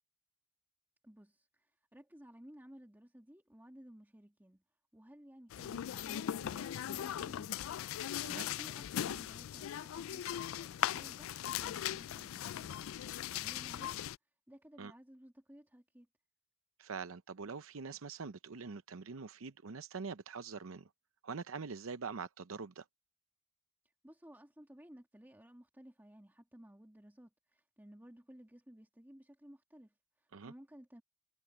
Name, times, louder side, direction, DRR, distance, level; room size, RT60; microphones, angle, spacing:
voice 1, 1.0-4.6 4.9-7.7 8.0-14.1 14.5-16.1 23.8-31.0, equal, 10° right, 1.9 m, -57 dB
sound 1, 5.5-14.2, left 11 dB, 75° left, 0.3 m, -39 dB
voice 2, 16.8-20.9 21.2-22.8 30.3-30.5, right 5 dB, 80° right, 0.7 m, -44 dB
head